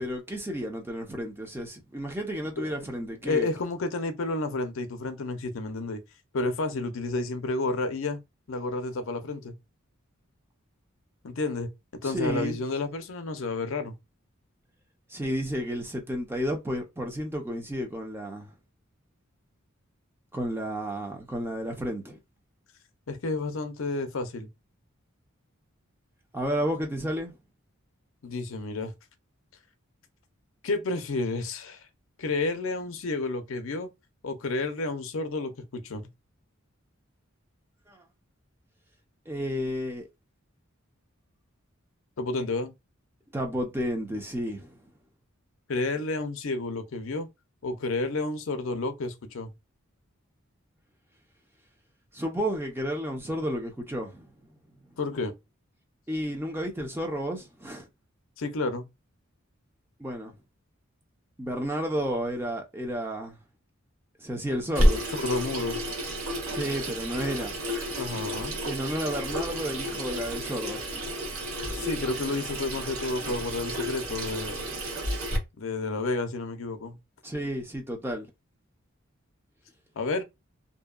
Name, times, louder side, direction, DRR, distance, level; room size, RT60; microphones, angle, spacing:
voice 1, 0.0-3.5 12.0-12.6 15.1-18.5 20.3-22.2 26.3-27.4 37.9-38.0 39.3-40.0 43.3-44.8 52.1-54.3 56.1-57.9 60.0-60.4 61.4-63.4 64.2-65.0 66.5-67.5 68.7-70.9 77.2-78.3, equal, 10° right, 0.5 m, -32 dB
voice 2, 3.3-6.0 6.3-8.2 8.5-9.5 11.2-13.9 23.1-24.5 28.2-28.9 30.6-31.9 32.2-33.9 34.2-36.1 42.2-42.7 45.7-47.3 47.6-49.5 55.0-55.3 58.4-58.8 65.1-65.8 68.0-68.6 71.7-74.6 75.6-77.0 80.0-80.2, left 3 dB, 70° left, 0.5 m, -30 dB
Water tap faucet / Sink (filling or washing), 64.7-75.4, equal, 85° right, 0.8 m, -30 dB
2.7 x 2.2 x 2.3 m
head